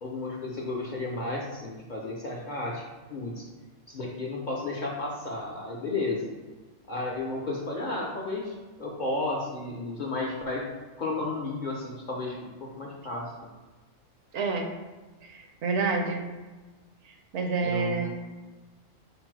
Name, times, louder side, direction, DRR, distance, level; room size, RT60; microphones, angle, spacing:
voice 1, 0.0-2.8 3.1-3.5 3.9-6.3 6.9-10.7 11.0-13.5 17.6-18.1, left 2 dB, 50° left, -3 dB, 0.6 m, -33 dB
voice 2, 14.3-14.7 15.3-16.2 17.3-18.1, right 4 dB, 70° right, 3 dB, 0.9 m, -28 dB
5.1 x 2.0 x 4.5 m, 1.3 s
omnidirectional pair, 1.3 m